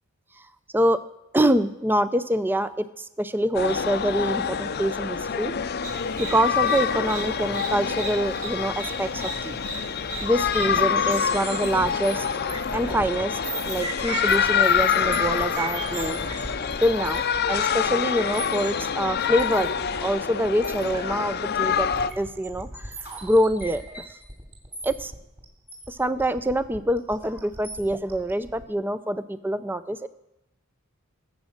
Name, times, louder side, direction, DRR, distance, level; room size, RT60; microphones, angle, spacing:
voice 1, 1.3-5.5 6.2-9.6 10.2-12.3 12.7-16.2 16.8-17.2 17.5-19.7 20.0-21.9 22.2-22.9 23.2-23.8 24.8-25.1 25.9-30.1, right 1 dB, 10° right, 13 dB, 0.5 m, -25 dB
sound 1, 3.5-22.1, left 7 dB, 50° left, 0.6 m, -26 dB
sound 2, 5.8-10.9, right 3 dB, 75° right, 6.6 m, -38 dB
sound 3, 10.1-28.6, right 3 dB, 30° right, 3.1 m, -38 dB
20.0 x 8.4 x 6.5 m, 0.89 s
head